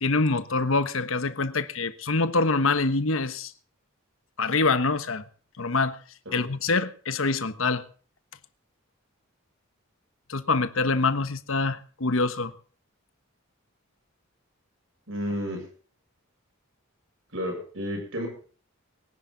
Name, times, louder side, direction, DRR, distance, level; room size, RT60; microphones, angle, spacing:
voice 1, 0.0-3.5 4.4-5.2 5.6-6.0 6.3-7.8 10.3-12.5, left 3 dB, 70° left, 1.3 m, -25 dB
voice 2, 15.1-15.7 17.3-18.3, equal, 65° right, 6.9 m, -31 dB
23.0 x 10.5 x 3.9 m
head